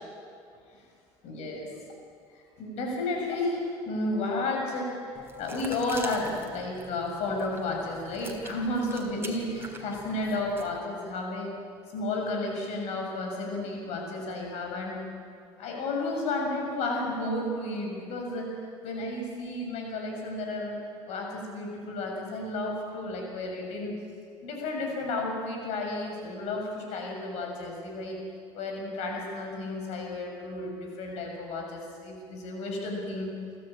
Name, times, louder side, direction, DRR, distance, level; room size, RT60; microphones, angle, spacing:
voice 1, 1.2-1.7 2.6-11.5 11.9-15.0 15.6-18.5 18.8-20.8 21.1-24.0 24.4-28.2 28.5-33.3, left 2 dB, 70° left, 1 dB, 6.9 m, -32 dB
sound 1, 5.1-10.8, right 3 dB, 20° right, 3.6 m, -46 dB
27.0 x 14.0 x 8.9 m, 2.4 s
supercardioid pair, 90°, 12 cm